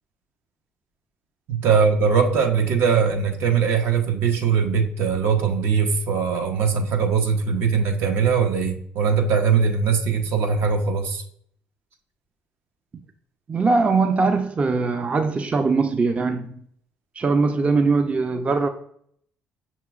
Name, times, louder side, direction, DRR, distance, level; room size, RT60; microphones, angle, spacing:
voice 1, 1.5-11.2, right 6 dB, 70° right, 0.7 m, -21 dB
voice 2, 13.5-16.5 17.2-18.7, right 4 dB, 30° right, 0.4 m, -21 dB
5.9 x 2.9 x 2.4 m
supercardioid pair, 70°, 4 cm